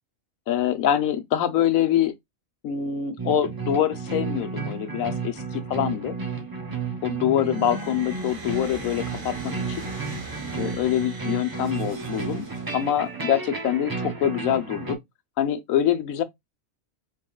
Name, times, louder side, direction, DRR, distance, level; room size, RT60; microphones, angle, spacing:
voice 1, 0.5-2.1 2.6-6.1 7.0-9.8 10.6-12.4 12.7-15.0 15.4-16.2, left 10 dB, 80° left, 1.2 m, -25 dB
sound 1, 3.2-15.0, right 4 dB, 20° right, 0.6 m, -32 dB
sound 2, 7.4-13.1, right 3 dB, 65° right, 1.4 m, -39 dB
5.1 x 3.6 x 2.3 m
omnidirectional pair, 1.4 m